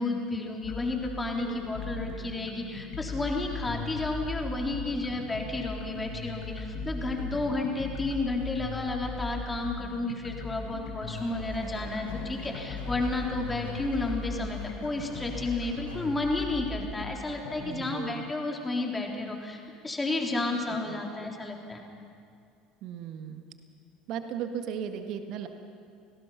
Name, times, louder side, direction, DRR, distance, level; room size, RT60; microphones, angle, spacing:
voice 1, 0.0-21.8, left 2 dB, 15° left, 1 dB, 3.7 m, -32 dB
sound 1, 0.6-17.6, left 3 dB, 65° left, 3.8 m, -38 dB
sound 2, 11.1-16.1, left 1 dB, 90° left, 7.3 m, -49 dB
voice 2, 17.6-18.3 20.7-21.3 22.8-23.4 24.1-25.5, right 8 dB, 55° right, 7 dB, 1.6 m, -37 dB
28.5 x 18.5 x 5.9 m, 2.3 s
figure-of-eight pair, 65°, 0 cm